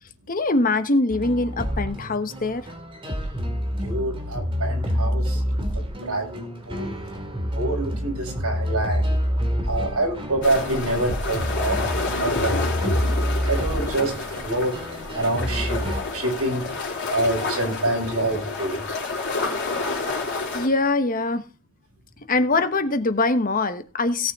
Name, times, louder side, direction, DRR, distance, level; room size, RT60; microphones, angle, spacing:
voice 1, 0.3-2.6 19.9-20.1 20.5-21.4 22.3-24.3, left 2 dB, 40° left, 9 dB, 1.1 m, -23 dB
sound 1, 1.1-16.0, equal, 25° right, 2.3 m, -28 dB
voice 2, 3.8-6.4 6.7-7.0 7.5-9.1 9.6-11.8 12.1-12.5 12.9-13.0 13.4-14.1 14.4-14.8 15.1-15.8 16.1-16.6 17.1-18.8, right 2 dB, 75° right, 0 dB, 6.1 m, -26 dB
sound 2, 10.4-20.7, left 3 dB, 55° left, 3.9 m, -29 dB
17.5 x 6.6 x 3.6 m, 0.34 s
head